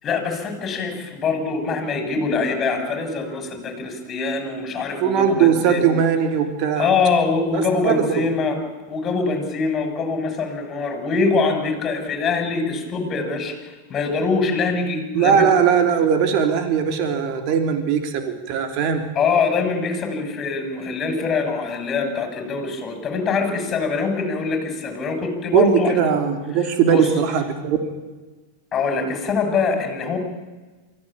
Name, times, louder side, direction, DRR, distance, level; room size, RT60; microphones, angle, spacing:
voice 1, 0.0-5.9 6.8-8.6 8.9-13.5 13.9-15.5 19.1-25.9 26.9-27.1 28.7-30.2, left 4 dB, 30° left, 5 dB, 6.8 m, -23 dB
voice 2, 5.0-6.9 7.5-8.2 15.1-19.0 25.5-27.8, right 7 dB, 50° right, 6 dB, 3.3 m, -19 dB
23.5 x 15.5 x 8.8 m, 1.2 s
hypercardioid pair, 120°, 0 cm